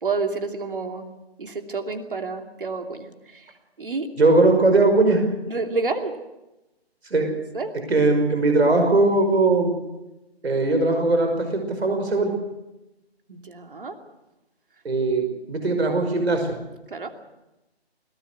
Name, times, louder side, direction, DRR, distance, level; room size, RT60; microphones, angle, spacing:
voice 1, 0.0-1.1 1.4-3.5 3.8-4.1 5.5-6.1 7.5-7.7 13.3-14.0 16.9-17.1, right 4 dB, 55° right, 5 dB, 2.8 m, -29 dB
voice 2, 4.2-5.2 7.1-7.3 7.9-9.7 10.4-12.3 14.8-16.5, right 2 dB, 70° right, 4 dB, 5.7 m, -19 dB
21.5 x 18.0 x 8.2 m, 0.99 s
figure-of-eight pair, 170°, 32 cm